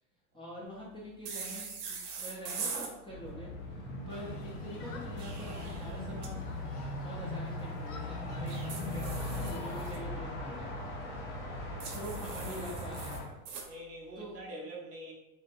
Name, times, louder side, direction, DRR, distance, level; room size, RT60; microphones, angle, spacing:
voice 1, 0.3-6.4 7.0-9.2 9.5-10.8 11.9-13.2 14.2-14.3, equal, 10° left, -6 dB, 0.5 m, -45 dB
sound 1, 1.3-2.9 5.0-6.3 8.5-10.0 11.8-13.7, right 5 dB, 75° right, 0.7 m, -42 dB
sound 2, 3.1-13.2, left 1 dB, 55° left, 0.9 m, -39 dB
Human group actions, 4.1-9.9, left 4 dB, 85° left, 0.5 m, -51 dB
voice 2, 13.6-15.1, right 1 dB, 30° right, -1 dB, 0.6 m, -46 dB
2.7 x 2.1 x 2.5 m, 0.97 s
hypercardioid pair, 85°, 46 cm